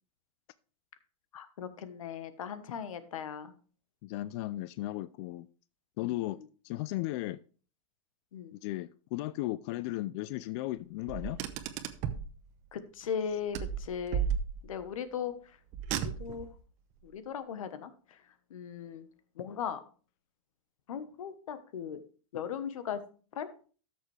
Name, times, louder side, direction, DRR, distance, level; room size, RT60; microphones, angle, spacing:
voice 1, 1.3-3.5 6.3-6.4 8.3-8.5 12.7-14.3 14.6-15.3 16.0-16.5 17.0-18.2 18.5-19.1 19.4-19.8 20.9-22.0 22.3-23.0 23.3-23.5, left 7 dB, 85° left, 1.2 m, -38 dB
voice 2, 4.0-5.5 6.0-6.4 6.6-7.4 8.6-11.4, left 17 dB, 55° left, 0.4 m, -35 dB
Car, 11.1-12.3 13.5-14.9 15.7-16.5, right 8 dB, 45° right, 1.0 m, -34 dB
13.5 x 6.7 x 3.3 m
hypercardioid pair, 120°, 17 cm